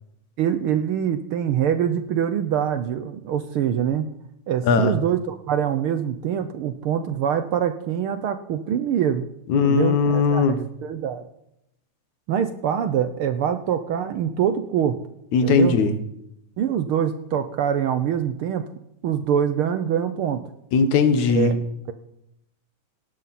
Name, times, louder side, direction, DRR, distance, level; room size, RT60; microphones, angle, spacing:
voice 1, 0.4-4.1 4.5-9.2 9.6-11.2 12.3-15.0 15.4-15.8 16.6-18.7 19.0-20.4 21.3-21.6, right 9 dB, 75° right, 10 dB, 1.2 m, -24 dB
voice 2, 9.5-10.6 15.3-15.9 20.7-21.5, left 5 dB, 75° left, 9 dB, 2.7 m, -19 dB
18.0 x 12.0 x 4.2 m, 0.81 s
omnidirectional pair, 3.4 m